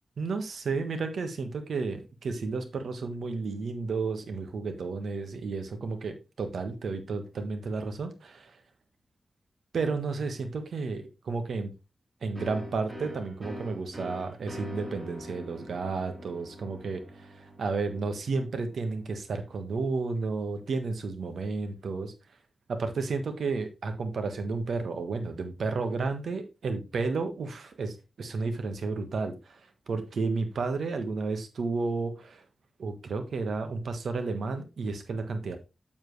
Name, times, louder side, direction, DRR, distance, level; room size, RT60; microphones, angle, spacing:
voice 1, 0.2-8.6 9.7-11.7 12.2-22.1 22.7-29.6 29.9-32.4 32.8-35.6, right 4 dB, 85° right, 7 dB, 1.4 m, -32 dB
sound 1, 12.3-19.8, equal, 25° right, 1.9 m, -44 dB
7.4 x 7.3 x 3.2 m, 0.27 s
wide cardioid pair, 175°, 0 cm